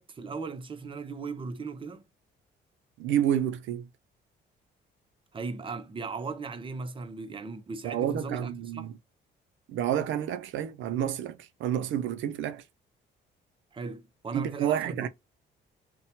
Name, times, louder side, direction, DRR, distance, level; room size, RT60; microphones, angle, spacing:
voice 1, 0.0-2.1 5.3-8.9 13.7-15.1, right 4 dB, 25° right, 0.5 m, -37 dB
voice 2, 3.0-3.9 7.8-8.9 9.7-12.6 14.3-15.1, right 10 dB, 75° right, 0.4 m, -29 dB
2.8 x 2.1 x 2.7 m
cardioid pair, 90°, 20 cm